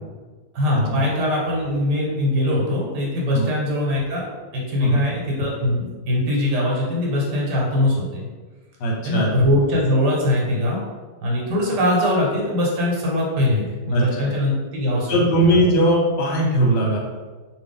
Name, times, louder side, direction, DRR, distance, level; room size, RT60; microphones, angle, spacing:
voice 1, 0.5-8.3 9.0-10.8 11.2-15.6, left 1 dB, 85° right, -3 dB, 1.4 m, -22 dB
voice 2, 8.8-9.3 13.9-14.3 15.1-17.0, right 1 dB, 80° left, -2 dB, 1.4 m, -19 dB
3.0 x 2.5 x 3.4 m, 1.4 s
omnidirectional pair, 1.8 m